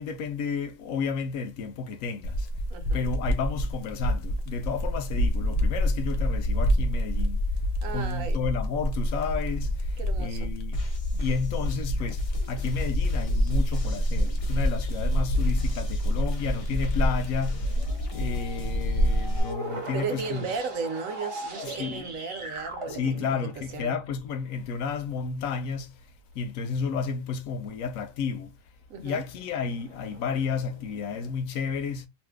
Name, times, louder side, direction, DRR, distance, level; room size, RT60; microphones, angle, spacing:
voice 1, 0.0-2.5 2.9-7.4 7.9-10.8 11.1-17.7 18.1-20.5 21.6-22.1 22.9-26.0 26.3-28.5 29.0-32.1, left 5 dB, 85° left, 1.0 m, -32 dB
sound 1, 2.2-19.4, equal, 55° left, 0.9 m, -27 dB
voice 2, 2.7-3.1 7.8-8.4 10.0-10.5 19.9-23.9 28.9-29.2, right 5 dB, 80° right, 1.2 m, -35 dB
sound 2, 10.7-19.5, left 6 dB, 40° left, 0.5 m, -41 dB
sound 3, 17.4-24.2 25.6-25.7 27.3-27.9 28.8-31.3, right 1 dB, 45° right, 0.4 m, -40 dB
2.6 x 2.5 x 3.4 m
omnidirectional pair, 1.4 m